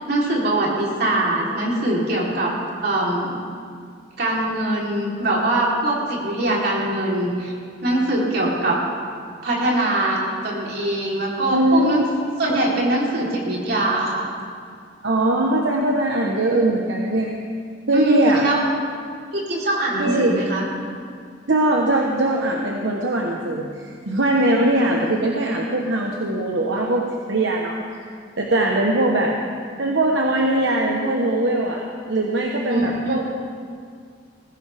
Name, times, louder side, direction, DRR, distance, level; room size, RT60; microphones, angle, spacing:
voice 1, 0.0-2.5 2.8-3.4 4.2-7.5 7.8-8.8 9.4-12.0 12.4-14.3 17.9-18.6 19.3-20.6 32.7-33.2, right 1 dB, 60° right, -4 dB, 3.8 m, -22 dB
voice 2, 11.5-12.1 12.5-12.6 15.0-17.3 17.9-18.5 20.0-20.4 21.5-23.7 24.1-28.1 28.4-29.3 29.8-33.3, right 1 dB, 80° right, -1 dB, 1.2 m, -21 dB
20.0 x 15.5 x 3.6 m, 2.1 s
head